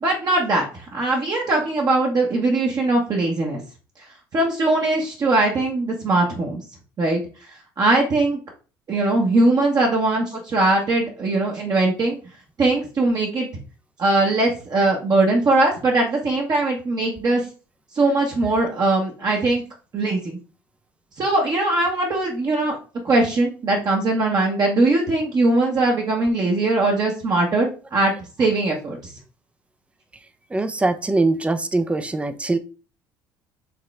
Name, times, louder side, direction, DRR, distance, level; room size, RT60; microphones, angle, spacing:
voice 1, 0.0-3.6 4.3-6.6 7.0-7.2 7.8-8.4 8.9-12.2 12.6-13.5 14.0-17.4 17.9-19.6 19.9-20.4 21.2-22.8 23.0-28.1 28.4-29.1, right 2 dB, 40° right, 1.1 m, -20 dB
voice 2, 30.5-32.6, right 2 dB, 10° right, 0.5 m, -22 dB
4.8 x 3.1 x 3.2 m
hypercardioid pair, 75°, 10 cm